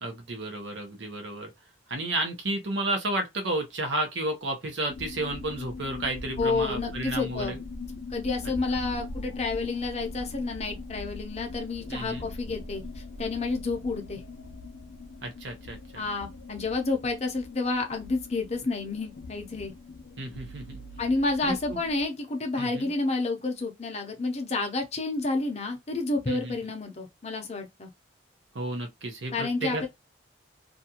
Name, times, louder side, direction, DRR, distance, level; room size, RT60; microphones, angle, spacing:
voice 1, 0.0-1.5 1.9-7.6 11.9-12.3 15.2-16.1 20.2-20.8 21.4-21.8 22.6-22.9 26.3-26.7 28.5-29.9, right 2 dB, 70° right, 0.7 m, -32 dB
sound 1, 4.9-22.0, left 3 dB, 80° left, 0.5 m, -41 dB
voice 2, 6.4-7.5 8.1-14.2 15.9-19.7 21.0-27.9 29.3-29.9, left 3 dB, 35° left, 0.6 m, -30 dB
2.5 x 2.3 x 2.8 m
head